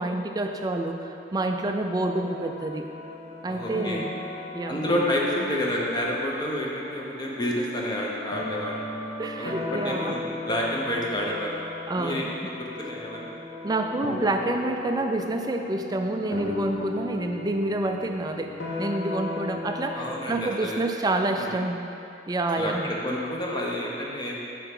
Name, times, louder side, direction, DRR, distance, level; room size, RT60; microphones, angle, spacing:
voice 1, 0.0-2.9 3.4-4.1 4.5-4.8 9.2-10.2 11.9-12.3 13.6-21.8 22.3-22.9, right 2 dB, 20° right, 4 dB, 0.3 m, -28 dB
sound 1, 2.0-20.5, left 3 dB, 70° left, 1.1 m, -36 dB
voice 2, 3.5-4.0 4.7-8.9 9.4-11.6 12.0-13.3 19.9-21.5 22.6-24.4, equal, 25° left, -3 dB, 0.8 m, -29 dB
6.9 x 5.7 x 3.7 m, 2.7 s
head